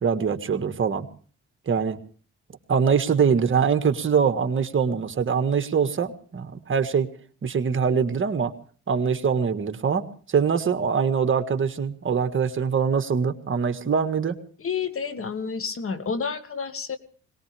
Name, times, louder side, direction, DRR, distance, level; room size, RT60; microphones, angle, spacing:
voice 1, 0.0-1.1 1.7-2.0 2.7-7.1 7.4-8.5 8.9-14.4, right 6 dB, 40° right, 8 dB, 1.6 m, -23 dB
voice 2, 14.6-17.0, left 5 dB, 45° left, 11 dB, 1.7 m, -30 dB
22.0 x 19.5 x 3.4 m, 0.43 s
cardioid pair, 90°, 30 cm